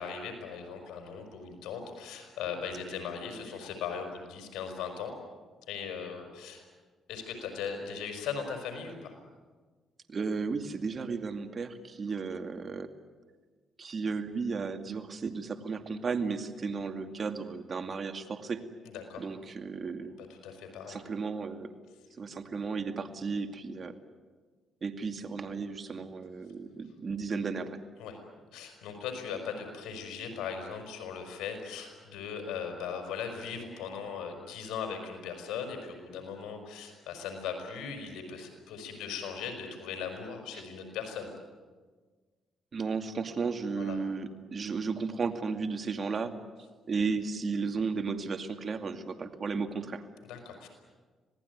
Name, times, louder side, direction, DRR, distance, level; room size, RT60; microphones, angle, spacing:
voice 1, 0.0-5.1 5.7-6.6 7.1-9.2 18.8-19.2 20.2-21.0 28.0-28.2 28.5-41.3 43.7-44.0 50.2-50.7, left 6 dB, 85° left, 5 dB, 5.3 m, -39 dB
voice 2, 10.1-12.9 13.8-18.6 19.2-20.1 20.9-21.7 22.2-24.0 24.8-27.8 42.7-46.3 46.9-50.0, right 4 dB, 40° right, 7 dB, 2.3 m, -34 dB
26.5 x 18.5 x 9.7 m, 1.4 s
cardioid pair, 90°, 0 cm